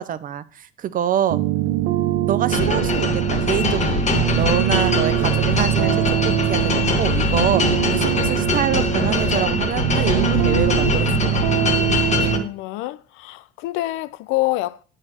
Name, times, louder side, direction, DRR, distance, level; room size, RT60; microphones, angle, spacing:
voice 1, 0.0-1.4 2.3-11.7, right 10 dB, 40° right, 0.6 m, -26 dB
sound 1, 1.3-12.5, right 13 dB, 75° right, 0.7 m, -22 dB
sound 2, 2.5-12.4, left 4 dB, 35° left, 1.3 m, -23 dB
sound 3, 4.3-9.4, left 2 dB, 90° left, 1.8 m, -39 dB
voice 2, 12.2-14.8, left 18 dB, 70° left, 0.5 m, -26 dB
8.7 x 3.3 x 6.1 m
supercardioid pair, 85°, 21 cm